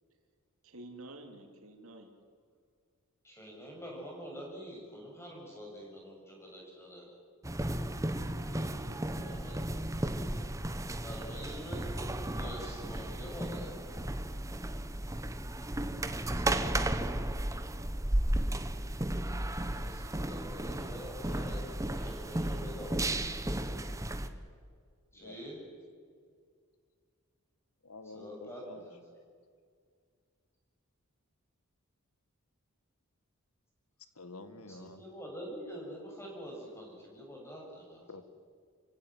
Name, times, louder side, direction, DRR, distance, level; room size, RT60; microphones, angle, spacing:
voice 1, 0.6-2.1 8.3-9.6, right 2 dB, 75° right, 4 dB, 3.5 m, -51 dB
voice 2, 3.2-7.1 9.2-9.6 11.0-11.9 12.3-13.8 19.7-23.0 25.1-25.6 28.1-29.0 34.7-38.0, equal, 10° left, -1 dB, 7.0 m, -46 dB
sound 1, 7.4-24.3, right 1 dB, 15° right, 1.1 m, -34 dB
voice 3, 22.3-23.1 25.1-25.8 27.8-28.9 34.0-35.0 38.1-38.2, left 2 dB, 85° left, 10 dB, 1.8 m, -50 dB
28.0 x 16.0 x 9.5 m, 2.1 s
head